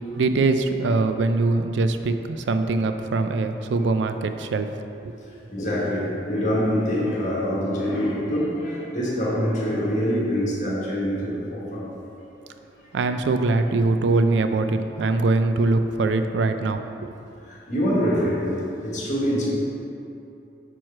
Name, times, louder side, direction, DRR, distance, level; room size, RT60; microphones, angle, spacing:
voice 1, 0.1-4.7 5.0-5.1 12.9-16.8, right 3 dB, 90° right, 8 dB, 0.4 m, -22 dB
voice 2, 5.3-11.9 12.3-12.7 13.0-13.1 17.5-19.5, equal, 45° left, -6 dB, 1.5 m, -25 dB
6.1 x 4.7 x 4.5 m, 2.7 s
head